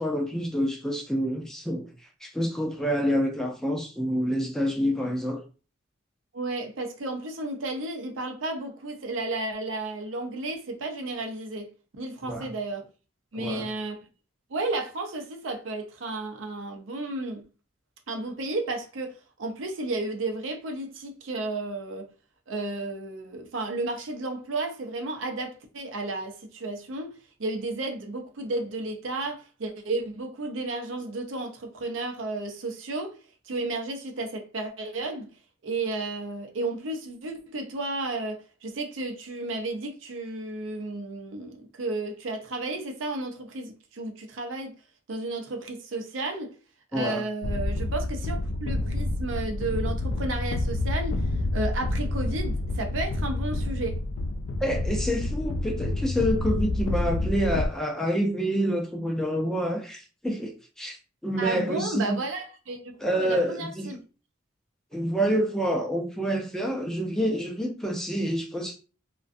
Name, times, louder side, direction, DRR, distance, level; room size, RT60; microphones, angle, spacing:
voice 1, 0.0-1.9 2.2-5.4 12.2-12.5 13.4-13.7 46.9-47.2 54.6-61.0 61.2-62.2 63.0-63.9 64.9-68.8, equal, 5° left, 0.3 m, -27 dB
voice 2, 6.3-11.7 12.0-12.9 13.3-14.0 14.5-17.4 18.1-22.1 22.5-27.1 27.4-33.2 33.5-35.3 35.6-44.8 45.1-46.5 46.9-51.2 51.5-54.0 61.4-64.0, right 2 dB, 85° right, 0.5 m, -33 dB
sound 1, 47.4-57.7, left 2 dB, 85° left, 0.3 m, -28 dB
2.4 x 2.2 x 2.5 m
head